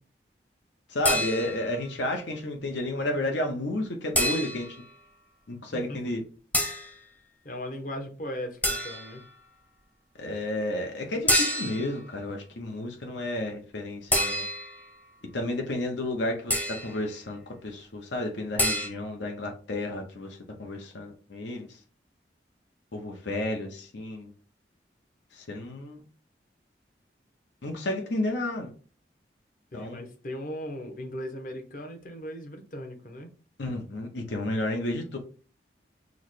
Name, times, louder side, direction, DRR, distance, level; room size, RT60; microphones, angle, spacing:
voice 1, 0.9-4.7 5.5-6.2 10.2-14.4 15.3-21.8 22.9-24.3 25.3-26.0 27.6-28.7 29.7-30.0 33.6-35.2, left 1 dB, 80° left, 2 dB, 0.8 m, -32 dB
sound 1, 1.0-1.7 4.1-4.8 6.5-6.9 8.6-9.2 11.3-11.9 14.1-14.8 16.5-17.0 18.6-18.9, equal, 10° left, 0.6 m, -27 dB
voice 2, 5.7-6.2 7.4-9.2 29.7-33.3, equal, 45° left, 4 dB, 0.9 m, -38 dB
6.2 x 2.2 x 3.1 m, 0.39 s
head